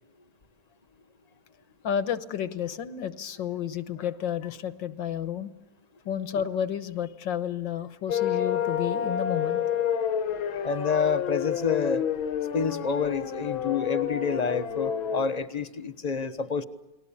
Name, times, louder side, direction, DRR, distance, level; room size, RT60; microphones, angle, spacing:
voice 1, 1.8-5.5 6.1-9.6 10.4-10.6, left 9 dB, 70° left, 13 dB, 1.8 m, -31 dB
sound 1, 8.1-15.3, left 9 dB, 85° left, 2.0 m, -29 dB
voice 2, 10.6-12.0 12.5-16.6, left 5 dB, 25° left, 10 dB, 1.0 m, -28 dB
30.0 x 20.5 x 8.6 m, 0.99 s
omnidirectional pair, 2.2 m